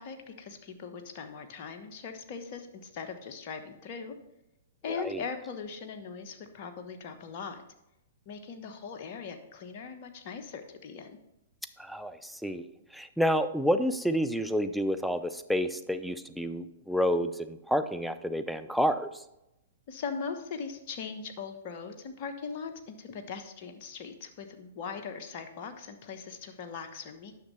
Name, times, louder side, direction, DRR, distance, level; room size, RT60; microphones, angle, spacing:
voice 1, 0.0-4.1 4.8-7.6 8.3-11.2 19.9-27.3, left 5 dB, 45° left, 6 dB, 1.1 m, -40 dB
voice 2, 4.9-5.2 11.8-12.7 12.9-19.2, equal, ahead, 11 dB, 0.5 m, -29 dB
9.4 x 6.4 x 3.3 m, 0.88 s
hypercardioid pair, 115°, 0 cm